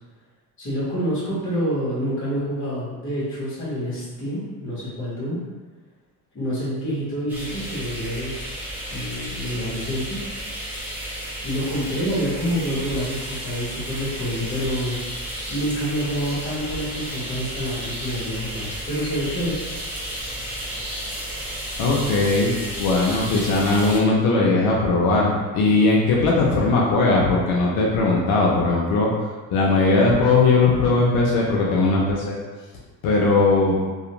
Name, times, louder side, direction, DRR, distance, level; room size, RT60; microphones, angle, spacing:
voice 1, 0.6-5.4 6.3-10.3 11.4-15.0 15.5-19.6, equal, 35° left, -9 dB, 1.2 m, -27 dB
sound 1, 7.3-24.0, equal, 5° right, 0.3 m, -33 dB
voice 2, 21.8-29.1 29.5-32.4 33.0-33.8, left 3 dB, 85° left, -4 dB, 0.6 m, -19 dB
2.4 x 2.4 x 2.9 m, 1.3 s
cardioid pair, 165°, 36 cm